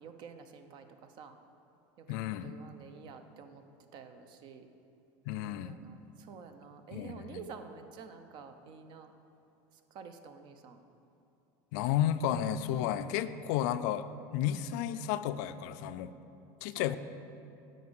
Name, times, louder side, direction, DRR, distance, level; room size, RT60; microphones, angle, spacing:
voice 1, 0.0-1.4 2.0-3.6 3.9-4.7 5.4-9.1 9.9-10.8 16.7-17.0, right 6 dB, 50° right, 8 dB, 0.8 m, -49 dB
voice 2, 2.1-2.6 5.3-5.8 6.9-7.4 11.7-14.1 14.3-16.1 16.6-17.0, left 11 dB, 70° left, 12 dB, 0.4 m, -32 dB
9.2 x 5.2 x 7.9 m, 2.8 s
supercardioid pair, 130°, 10 cm